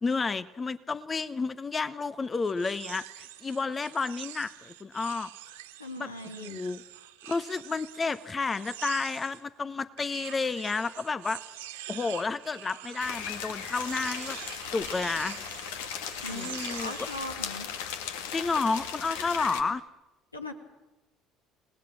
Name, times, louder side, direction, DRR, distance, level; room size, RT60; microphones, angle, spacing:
voice 1, 0.0-5.3 6.0-6.1 6.4-6.8 7.2-11.4 11.9-14.4 14.7-15.4 16.3-17.1 18.3-19.8, left 4 dB, 25° left, 16 dB, 1.0 m, -31 dB
sound 1, 2.5-9.4 10.0-17.2, right 15 dB, 70° right, 1.9 m, -45 dB
voice 2, 5.8-6.6 16.2-17.7 20.3-20.5, left 2 dB, 85° left, 6 dB, 2.0 m, -39 dB
sound 2, 13.0-19.6, left 8 dB, 65° left, 1.8 m, -37 dB
28.5 x 19.0 x 7.6 m, 1.0 s
figure-of-eight pair, 60°, 0 cm